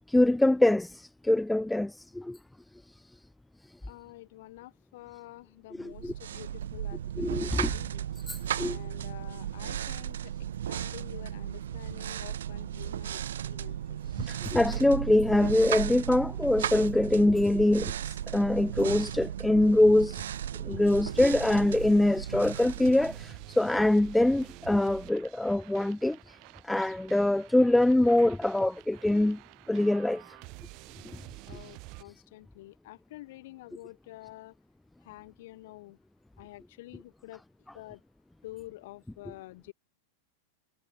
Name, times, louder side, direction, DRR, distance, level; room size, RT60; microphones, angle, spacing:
voice 1, 0.1-2.4 5.8-6.1 7.2-7.7 8.3-8.8 14.2-20.2 20.6-26.4 26.6-29.4 29.7-30.2, left 1 dB, 5° left, 0.4 m, -24 dB
voice 2, 3.9-8.1 8.5-10.3 10.7-14.0 31.5-34.6 35.0-36.0 36.4-37.4 37.7-38.0 38.4-39.7, left 18 dB, 50° left, 2.3 m, -48 dB
sound 1, 5.9-23.7, right 10 dB, 60° right, 0.6 m, -35 dB
sound 2, 21.0-32.0, right 28 dB, 45° right, 2.4 m, -49 dB
figure-of-eight pair, 90°, 0 cm